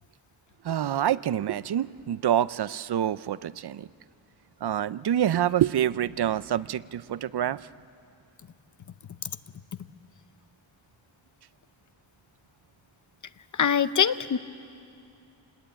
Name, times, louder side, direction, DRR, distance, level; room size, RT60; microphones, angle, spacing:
voice 1, 0.6-3.9 4.6-7.7, right 10 dB, 55° right, 18 dB, 0.5 m, -26 dB
voice 2, 13.5-14.4, left 7 dB, 40° left, 13 dB, 0.7 m, -23 dB
27.0 x 20.0 x 9.1 m, 2.5 s
wide cardioid pair, 155°, 47 cm